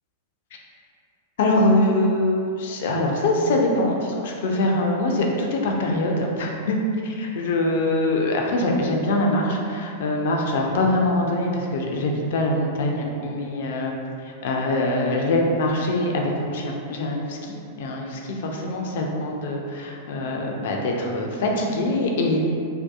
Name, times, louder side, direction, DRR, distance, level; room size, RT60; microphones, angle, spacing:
voice 1, 1.4-6.8 7.0-13.9 14.2-22.4, left 1 dB, 60° left, 0 dB, 0.3 m, -23 dB
2.6 x 2.1 x 2.3 m, 2.4 s
figure-of-eight pair, 95°, 0 cm